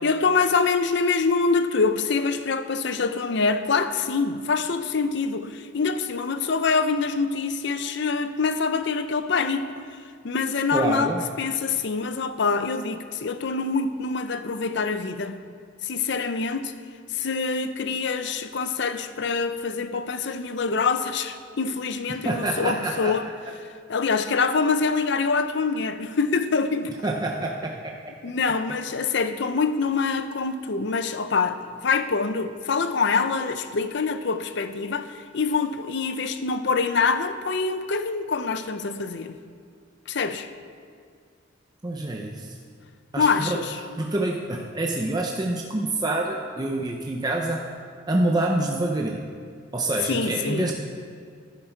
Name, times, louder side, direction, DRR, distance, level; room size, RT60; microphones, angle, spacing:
voice 1, 0.0-9.8 10.2-11.1 11.4-15.4 15.8-16.7 17.1-23.2 23.9-26.9 28.2-39.4 40.1-40.5 43.2-43.8 50.1-50.7, left 4 dB, 60° left, 0.6 m, -25 dB
voice 2, 10.7-11.2 22.1-23.1 27.0-27.9 41.8-42.5 43.1-43.6 43.9-47.6 48.1-49.2 49.7-50.7, right 2 dB, 20° right, 0.7 m, -26 dB
11.5 x 10.5 x 4.6 m
head